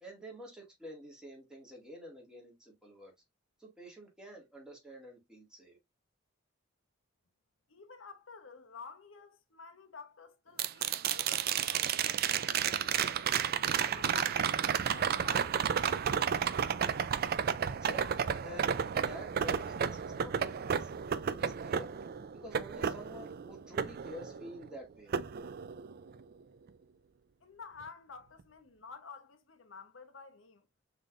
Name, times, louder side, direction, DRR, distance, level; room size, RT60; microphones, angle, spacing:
voice 1, 0.0-3.1 3.6-5.8 17.7-20.9 21.3-21.9 22.3-25.1, equal, 5° right, 1.9 m, -49 dB
voice 2, 7.7-13.1 13.7-16.5 27.4-30.7, left 4 dB, 85° left, 1.0 m, -51 dB
sound 1, 10.6-24.7 25.1-26.2 28.4-28.5, right 8 dB, 50° right, 0.4 m, -32 dB
6.0 x 3.4 x 2.5 m
head